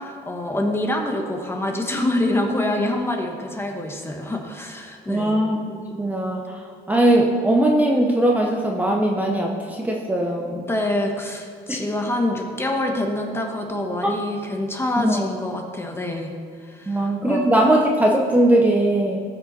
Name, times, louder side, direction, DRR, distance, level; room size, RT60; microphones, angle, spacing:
voice 1, 0.0-5.4 10.4-16.3 16.6-17.5, left 1 dB, 15° left, 2 dB, 1.3 m, -26 dB
voice 2, 5.1-6.6 6.9-10.7 11.7-11.8 14.0-14.1 15.0-15.3 16.9-19.2, right 1 dB, 10° right, -1 dB, 0.9 m, -20 dB
14.5 x 5.5 x 4.0 m, 2.2 s
cardioid pair, 110°, 17 cm